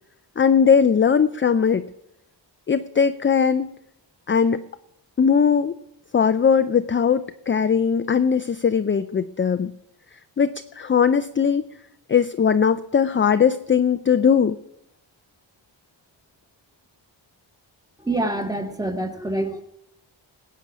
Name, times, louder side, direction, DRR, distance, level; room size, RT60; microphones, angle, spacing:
voice 1, 0.4-1.8 2.7-3.7 4.3-4.6 5.2-5.7 6.1-9.7 10.4-11.6 12.1-14.6, left 6 dB, 30° left, 11 dB, 0.4 m, -19 dB
voice 2, 18.0-19.6, right 1 dB, 10° right, 6 dB, 1.5 m, -26 dB
20.0 x 8.4 x 6.1 m, 0.81 s
wide cardioid pair, 115°, 46 cm